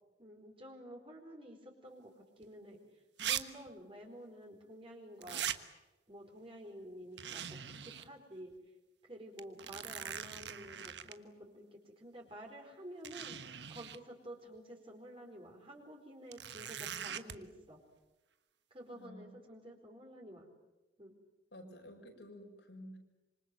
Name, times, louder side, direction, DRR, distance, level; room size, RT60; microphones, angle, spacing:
voice 1, 0.2-5.6 6.1-8.5 9.0-13.4 13.7-17.8 18.7-20.5 21.0-21.1, equal, 30° right, 1 dB, 4.5 m, -51 dB
sound 1, 2.4-2.5 3.2-3.4 3.7-3.8 5.2-5.6 7.2-8.1 8.5-8.6 9.4-11.1 12.3-12.4 13.0-14.0 16.3-17.4, right 9 dB, 75° right, 1.3 m, -40 dB
voice 2, 18.9-19.3 21.5-23.0, equal, 75° left, 2 dB, 6.3 m, -51 dB
26.5 x 25.0 x 8.0 m, 1.1 s
head